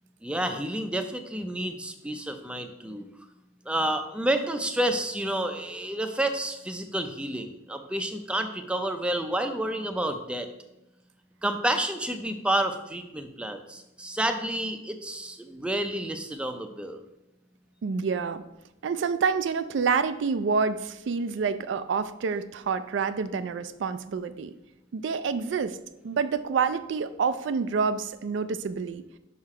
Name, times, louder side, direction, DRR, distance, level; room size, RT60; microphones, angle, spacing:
voice 1, 0.2-3.1 3.7-10.5 11.4-17.0, right 1 dB, 5° right, 7 dB, 0.5 m, -30 dB
voice 2, 17.8-18.4 18.8-24.5 24.9-25.8 26.0-29.0, right 5 dB, 65° right, 12 dB, 0.4 m, -28 dB
5.7 x 5.4 x 4.8 m, 0.93 s
head